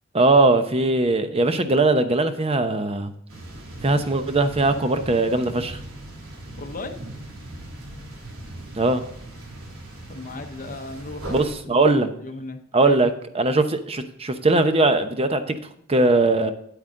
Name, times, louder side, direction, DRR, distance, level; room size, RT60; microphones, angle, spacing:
voice 1, 0.1-3.1 3.8-5.8 8.8-9.0 11.3-12.1 12.7-13.1 13.3-15.6 15.9-16.5, right 2 dB, 30° right, 9 dB, 0.8 m, -20 dB
sound 1, 3.3-11.5, right 1 dB, 80° right, 3.2 m, -39 dB
voice 2, 6.6-7.0 10.1-13.0, left 2 dB, 40° left, 5 dB, 0.8 m, -36 dB
9.7 x 8.1 x 3.7 m, 0.68 s
head